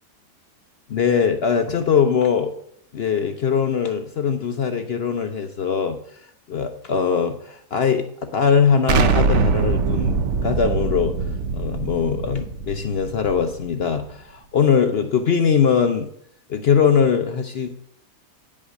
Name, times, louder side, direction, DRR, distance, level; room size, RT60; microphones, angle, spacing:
voice 1, 0.9-2.5 2.9-6.2 6.5-11.1 11.5-16.1 16.5-17.7, left 6 dB, 75° left, 7 dB, 0.5 m, -21 dB
Explosion, 8.9-13.7, right 4 dB, 60° right, 0.7 m, -22 dB
9.6 x 5.3 x 6.4 m, 0.66 s
omnidirectional pair, 1.8 m